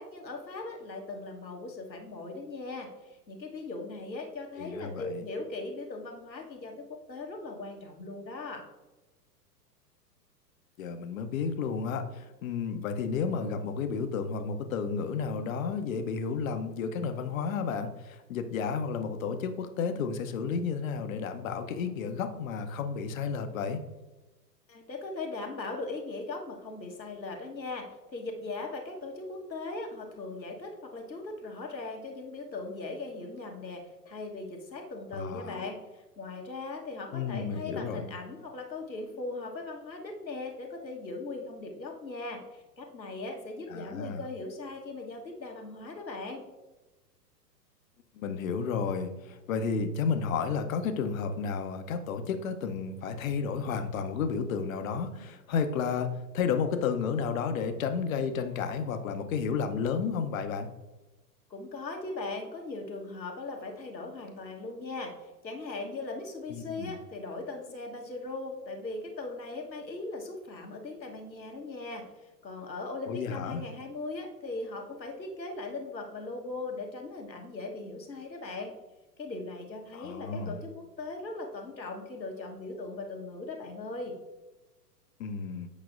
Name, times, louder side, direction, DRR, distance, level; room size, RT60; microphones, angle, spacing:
voice 1, 0.0-8.6 24.7-46.4 61.5-65.1 65.4-78.7 79.2-84.1, left 3 dB, 90° left, 1 dB, 1.3 m, -39 dB
voice 2, 4.6-5.2 10.8-23.8 35.1-35.6 37.1-38.0 43.7-44.2 48.1-60.7 66.5-67.0 73.1-73.6 79.9-80.6 85.2-85.7, left 5 dB, 55° left, 8 dB, 0.8 m, -32 dB
8.4 x 5.8 x 2.5 m, 1.1 s
figure-of-eight pair, 105°, 50 cm